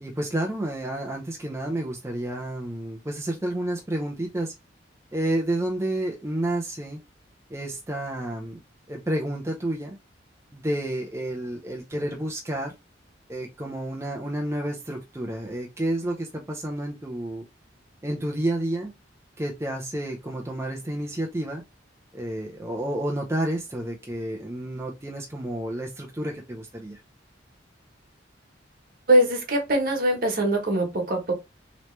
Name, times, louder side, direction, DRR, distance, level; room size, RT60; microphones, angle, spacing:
voice 1, 0.0-4.5 5.1-7.0 7.5-8.6 8.9-10.0 10.5-12.7 13.3-17.4 18.0-18.9 19.4-21.6 22.1-27.0, right 1 dB, 15° right, 0.5 m, -30 dB
voice 2, 29.1-31.3, right 1 dB, 50° right, 1.2 m, -22 dB
3.1 x 3.0 x 3.2 m
head